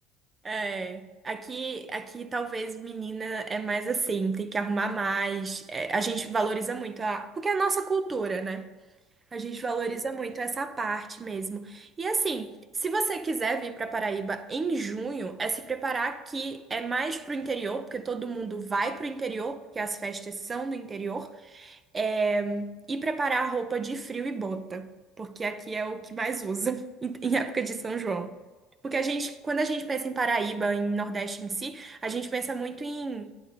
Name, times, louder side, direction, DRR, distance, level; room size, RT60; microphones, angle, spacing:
voice 1, 0.4-8.7 9.3-12.5 12.8-24.9 25.2-28.3 28.8-33.3, right 4 dB, 20° right, 0.5 m, -30 dB
8.7 x 3.9 x 6.5 m
cardioid pair, 120°, 0 cm